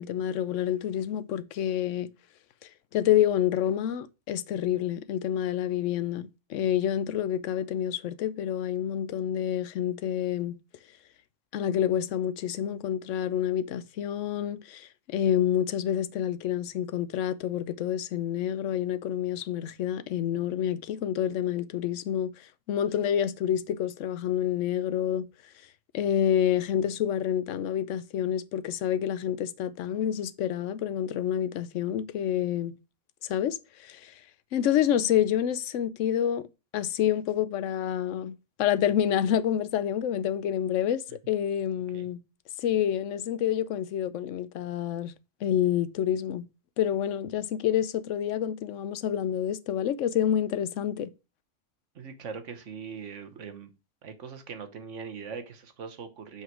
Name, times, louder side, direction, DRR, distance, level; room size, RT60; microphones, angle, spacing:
voice 1, 0.0-2.1 2.9-10.5 11.5-25.3 25.9-32.8 33.2-34.1 34.5-36.5 36.7-42.2 42.6-45.1 45.4-46.4 46.8-51.1, left 10 dB, 85° left, 1.0 m, -28 dB
voice 2, 51.9-53.7 54.0-56.4, right 6 dB, 80° right, 1.4 m, -41 dB
5.6 x 5.6 x 4.5 m
omnidirectional pair, 1.3 m